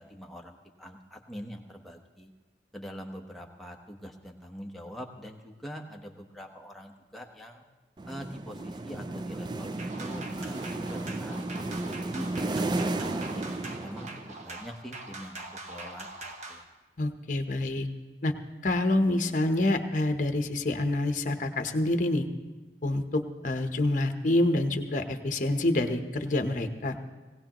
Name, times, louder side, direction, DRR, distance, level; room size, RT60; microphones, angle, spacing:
voice 1, 0.0-2.3 2.7-7.6 8.1-13.4 13.8-14.1 14.4-16.1 16.5-16.6, equal, ahead, 1 dB, 1.0 m, -44 dB
sound 1, 8.0-14.5, right 2 dB, 25° right, 0.3 m, -33 dB
sound 2, 9.8-16.6, right 2 dB, 40° right, 1.1 m, -43 dB
voice 2, 17.0-17.9 18.2-18.3 18.6-22.2 22.8-26.9, left 1 dB, 45° left, 6 dB, 0.9 m, -27 dB
19.0 x 17.5 x 3.0 m, 1.2 s
head